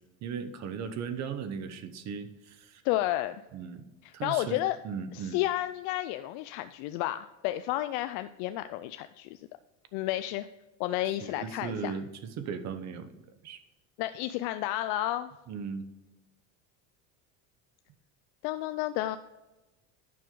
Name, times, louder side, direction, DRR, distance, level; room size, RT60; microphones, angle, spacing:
voice 1, 0.2-2.8 3.5-5.4 11.2-13.6 15.5-15.9, right 6 dB, 45° right, 10 dB, 1.0 m, -38 dB
voice 2, 2.8-3.4 4.0-4.8 5.1-9.4 9.9-10.5 10.8-12.0 14.0-15.3 18.4-19.2, left 15 dB, 75° left, 10 dB, 0.5 m, -31 dB
9.3 x 6.3 x 3.8 m, 1.0 s
cardioid pair, 130°, 37 cm